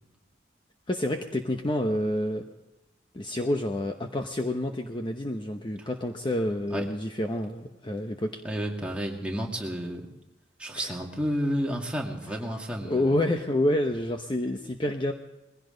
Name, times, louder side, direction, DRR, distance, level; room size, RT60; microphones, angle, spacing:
voice 1, 0.9-2.4 3.1-8.3 10.8-10.9 12.8-15.1, left 1 dB, 25° left, 4 dB, 0.9 m, -28 dB
voice 2, 8.4-10.1 10.6-13.1, equal, 5° right, -1 dB, 2.1 m, -31 dB
21.0 x 16.0 x 3.9 m, 0.96 s
head